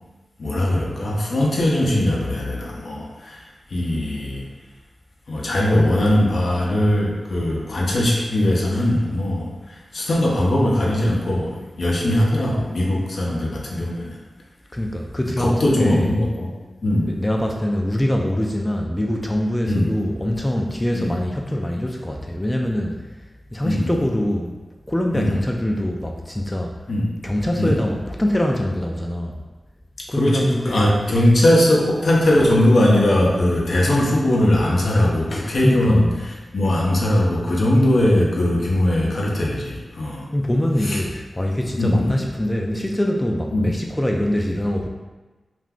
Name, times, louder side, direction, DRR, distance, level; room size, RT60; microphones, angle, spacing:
voice 1, 0.4-3.4 3.7-4.5 5.3-14.2 15.2-16.5 16.8-17.1 19.7-19.9 20.9-21.1 23.6-24.0 25.1-25.3 26.9-27.1 27.6-27.8 30.2-40.3 40.8-41.0 41.8-42.2 43.5-43.7, left 1 dB, 70° left, -3 dB, 0.6 m, -20 dB
voice 2, 14.7-16.1 17.1-23.0 23.5-24.5 24.9-26.7 27.2-29.4 30.1-30.9 35.6-36.0 40.3-44.9, left 1 dB, 15° left, 1 dB, 0.4 m, -23 dB
2.5 x 2.2 x 3.5 m, 1.2 s
cardioid pair, 45°, 0 cm